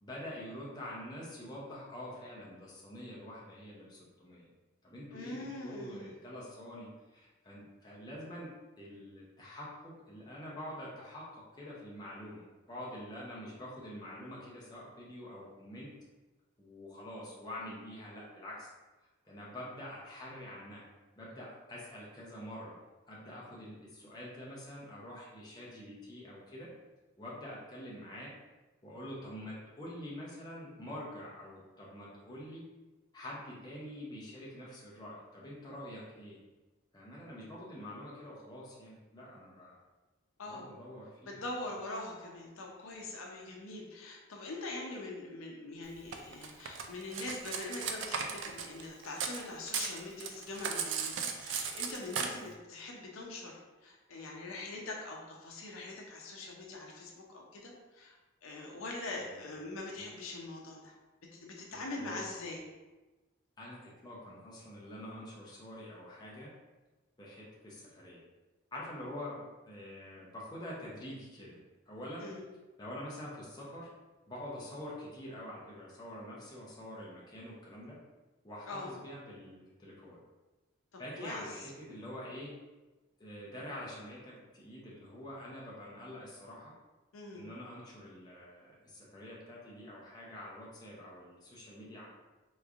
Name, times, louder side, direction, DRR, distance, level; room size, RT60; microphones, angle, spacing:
voice 1, 0.0-4.5 4.8-8.5 8.8-15.9 16.6-18.7 19.2-20.8 21.1-22.8 23.1-26.7 27.2-28.3 28.8-32.7 33.1-36.4 36.9-39.8 40.4-41.4 52.3-52.5 59.2-59.3 59.9-60.1 61.7-62.5 63.6-66.5 67.2-68.2 68.7-71.6 71.9-72.3 72.8-73.9 74.3-78.0 78.4-80.2 81.0-82.6 83.2-86.7 87.3-92.1, left 1 dB, 20° left, -5 dB, 0.6 m, -46 dB
voice 2, 5.1-6.1 40.4-40.7 41.3-58.2 58.4-60.9 61.3-62.6 72.2-72.4 78.7-78.9 80.9-81.5 87.1-87.4, left 2 dB, 75° left, -1 dB, 0.6 m, -43 dB
Cutlery silverware, 46.1-49.4 49.7-52.3, right 6 dB, 55° right, 0.3 m, -36 dB
3.5 x 3.1 x 2.4 m, 1.2 s
head